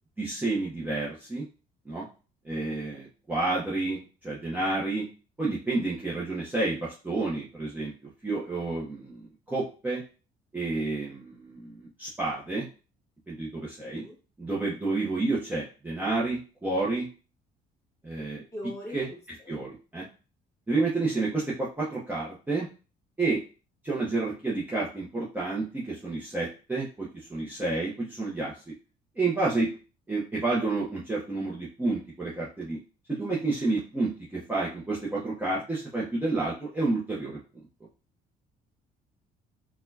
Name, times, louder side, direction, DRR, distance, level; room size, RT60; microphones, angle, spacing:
voice 1, 0.2-1.4 1.9-2.1 2.4-5.0 5.4-7.9 8.2-9.2 9.5-10.0 10.5-12.7 13.3-14.0 14.4-17.1 18.0-18.4 18.9-19.1 19.5-20.1 20.7-22.7 23.2-23.4 23.8-28.5 29.2-29.7 30.1-32.8 33.1-37.4, right 3 dB, 10° right, -7 dB, 0.8 m, -30 dB
voice 2, 18.5-19.2 19.5-19.6 20.8-20.9, left 1 dB, 15° left, -2 dB, 1.7 m, -40 dB
4.2 x 2.3 x 2.7 m, 0.36 s
cardioid pair, 110°, 17 cm